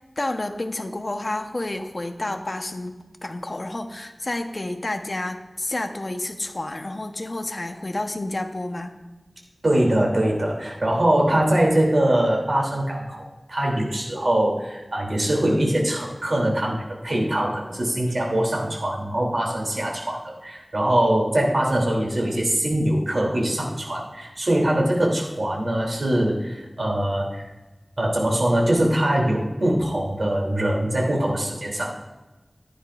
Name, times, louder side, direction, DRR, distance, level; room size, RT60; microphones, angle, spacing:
voice 1, 0.2-9.0, left 2 dB, 50° left, 5 dB, 1.0 m, -30 dB
voice 2, 9.6-27.4 28.0-31.9, right 1 dB, 65° right, -2 dB, 2.9 m, -22 dB
15.5 x 10.0 x 2.5 m, 1.2 s
wide cardioid pair, 55°, 0 cm